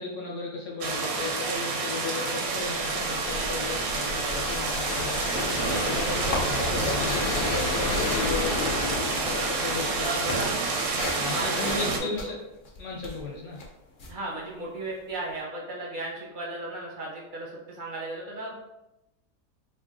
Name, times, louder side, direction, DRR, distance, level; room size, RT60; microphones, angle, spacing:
voice 1, 0.0-5.3 5.7-10.4 11.2-12.3 12.8-13.6, left 3 dB, 55° left, -2 dB, 1.0 m, -35 dB
sound 1, 0.8-12.0, right 4 dB, 85° right, 1.1 m, -29 dB
sound 2, 2.6-11.5, left 4 dB, 90° left, 1.1 m, -33 dB
sound 3, 4.3-4.9 5.2-9.2 9.5-15.1, left 2 dB, 75° left, 0.4 m, -37 dB
voice 2, 6.1-7.2 10.0-10.6 11.2-12.1 14.1-18.5, right 2 dB, 45° right, -3 dB, 0.6 m, -36 dB
3.0 x 2.5 x 3.6 m, 0.91 s
omnidirectional pair, 1.7 m